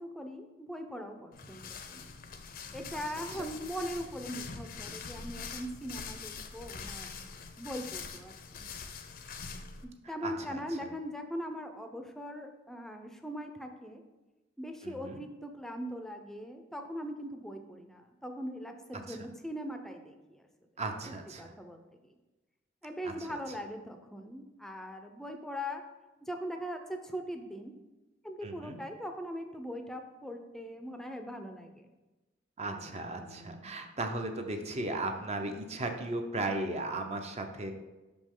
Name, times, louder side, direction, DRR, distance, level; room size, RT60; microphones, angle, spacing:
voice 1, 0.0-2.1 2.7-7.3 7.6-8.7 10.1-14.0 14.6-20.4 21.4-21.8 22.8-25.8 26.2-27.7 28.2-31.9 32.6-33.8, equal, ahead, 5 dB, 0.5 m, -41 dB
sound 1, 1.3-9.8, left 5 dB, 50° left, 0.6 m, -44 dB
voice 2, 10.0-10.6 14.8-15.2 19.1-19.2 20.8-21.5 23.0-23.4 28.4-28.8 32.6-37.7, right 2 dB, 35° right, 5 dB, 0.7 m, -36 dB
6.0 x 5.1 x 3.7 m, 1.1 s
head